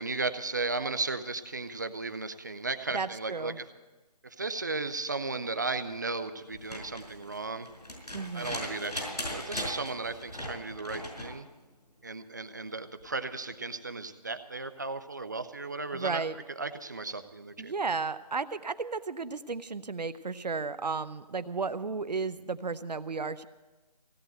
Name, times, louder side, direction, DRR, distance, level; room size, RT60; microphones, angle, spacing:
voice 1, 0.0-3.6 4.2-7.7 8.3-11.5 12.0-16.3 16.6-17.7, right 3 dB, 30° right, 10 dB, 0.5 m, -35 dB
voice 2, 2.9-3.6 8.1-8.6 15.9-16.3 17.6-23.5, right 4 dB, 80° right, 14 dB, 0.7 m, -33 dB
sound 1, 6.5-11.4 13.0-13.1, left 1 dB, 90° left, 5.2 m, -39 dB
16.5 x 8.9 x 7.9 m, 1.2 s
figure-of-eight pair, 165°, 21 cm